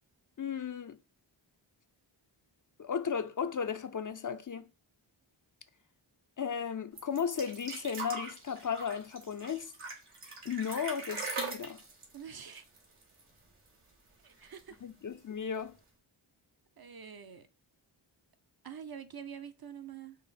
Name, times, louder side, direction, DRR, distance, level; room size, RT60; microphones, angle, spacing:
voice 1, 0.4-1.0 2.8-4.7 6.4-9.7 10.4-11.8 14.8-15.7, left 7 dB, 40° left, 0.4 m, -35 dB
sound 1, 7.0-13.4 13.7-13.8 14.1-14.8 15.6-15.7, right 3 dB, 90° right, 1.5 m, -41 dB
voice 2, 12.1-12.6 14.2-14.8 16.8-17.5 18.6-20.2, right 7 dB, 50° right, 0.6 m, -46 dB
5.0 x 2.1 x 4.0 m
cardioid pair, 50°, 49 cm